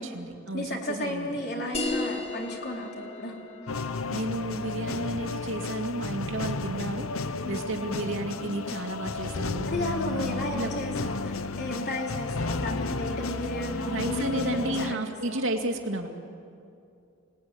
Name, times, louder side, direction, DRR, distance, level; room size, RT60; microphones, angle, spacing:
voice 1, 0.0-1.4 4.1-7.1 7.4-9.7 10.2-10.7 13.9-16.1, right 1 dB, 70° right, 3 dB, 2.6 m, -32 dB
voice 2, 0.5-3.4 3.7-4.0 7.4-7.6 9.7-15.4, left 1 dB, 50° left, 0 dB, 4.0 m, -34 dB
sound 1, 1.7-6.8, left 2 dB, 30° left, 2.7 m, -37 dB
sound 2, 3.7-14.9, left 3 dB, 90° left, 0.9 m, -33 dB
27.5 x 19.5 x 9.7 m, 2.5 s
head